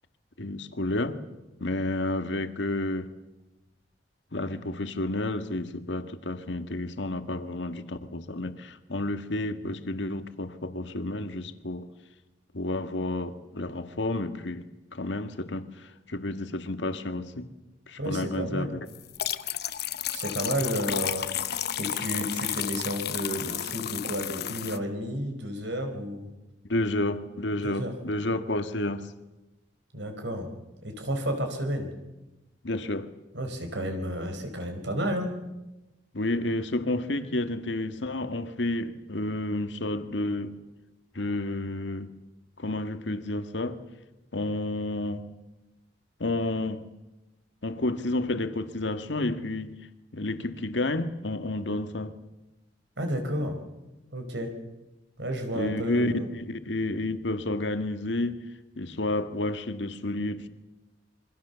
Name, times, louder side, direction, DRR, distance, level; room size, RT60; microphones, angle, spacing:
voice 1, 0.4-1.2 1.6-3.1 4.3-11.9 12.5-14.7 14.9-17.5 17.9-18.8 26.7-29.1 32.6-33.1 36.1-40.6 41.2-42.1 42.6-43.8 44.3-45.3 46.2-46.8 47.6-49.8 50.1-52.2 55.5-58.4 58.8-60.5, left 2 dB, 85° left, 1.8 m, -30 dB
voice 2, 18.0-18.8 20.1-21.5 21.8-26.3 27.6-27.9 29.9-30.5 30.8-31.9 33.3-35.3 53.0-53.6 54.1-54.5 55.2-56.2, equal, 80° right, 4.9 m, -31 dB
sound 1, 18.9-24.8, left 10 dB, 60° left, 1.0 m, -32 dB
27.0 x 24.0 x 7.0 m
head